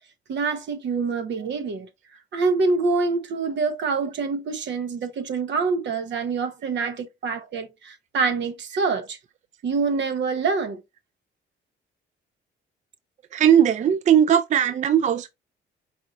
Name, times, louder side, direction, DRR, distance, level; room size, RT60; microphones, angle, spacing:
voice 1, 0.3-1.9 2.3-9.2 9.6-10.8, right 4 dB, 65° right, 1.1 m, -26 dB
voice 2, 13.3-15.3, right 9 dB, 35° right, 0.4 m, -18 dB
4.8 x 2.5 x 4.0 m
cardioid pair, 90°, 20 cm